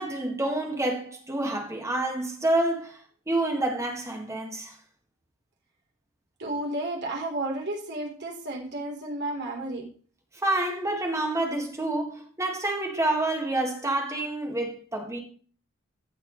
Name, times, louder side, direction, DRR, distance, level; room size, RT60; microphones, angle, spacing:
voice 1, 0.0-3.0 3.3-4.7 10.4-15.2, right 1 dB, 15° right, 1.8 m, -28 dB
voice 2, 6.4-9.8, right 1 dB, 55° right, 3.6 m, -32 dB
15.0 x 6.5 x 3.2 m
head